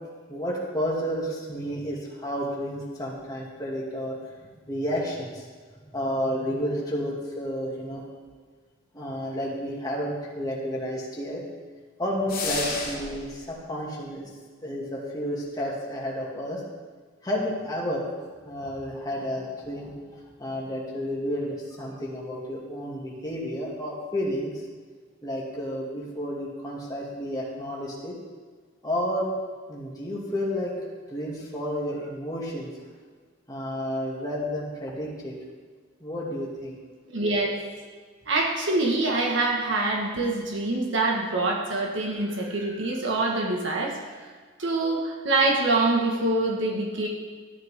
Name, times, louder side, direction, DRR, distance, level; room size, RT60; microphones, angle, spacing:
voice 1, 0.3-5.5 5.9-8.1 8.9-11.4 12.0-14.3 14.6-16.6 17.2-18.1 18.4-24.5 25.2-28.2 28.8-29.3 29.7-30.7 31.1-32.7 33.5-35.4 36.0-36.7, equal, 20° left, -4 dB, 2.4 m, -31 dB
sound 1, 12.3-13.3, left 4 dB, 50° left, 2.3 m, -31 dB
voice 2, 37.1-37.5 38.3-43.9 44.6-47.1, right 2 dB, 70° right, -1 dB, 1.8 m, -25 dB
13.5 x 9.4 x 3.8 m, 1.5 s
head